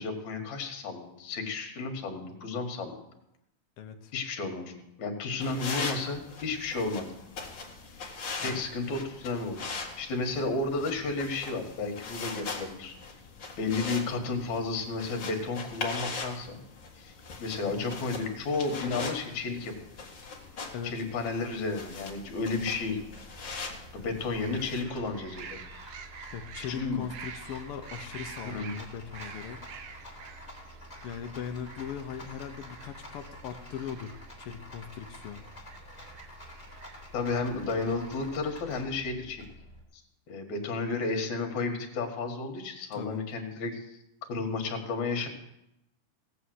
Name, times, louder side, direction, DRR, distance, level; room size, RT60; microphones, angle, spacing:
voice 1, 0.0-3.1 4.1-4.7 5.0-7.1 8.4-12.9 13.6-16.6 16.9-17.1 17.4-19.7 20.8-23.0 23.9-25.6 26.7-27.0 28.5-28.7 37.1-39.5 39.9-40.0 40.3-44.0 44.3-45.3, left 3 dB, 60° left, 4 dB, 3.0 m, -32 dB
voice 2, 3.8-4.1 8.4-8.6 17.6-17.9 20.7-21.0 26.3-30.1 31.0-35.4 42.9-43.2, left 8 dB, 80° left, 5 dB, 1.3 m, -40 dB
sound 1, 5.4-24.8, left 4 dB, 40° left, 2.2 m, -40 dB
Gulls on The isles of Scilly, 19.1-38.3, right 6 dB, 65° right, 1.8 m, -50 dB
Rattle, 23.0-39.8, left 1 dB, 15° left, 2.4 m, -49 dB
17.0 x 7.1 x 7.9 m, 0.85 s
omnidirectional pair, 3.8 m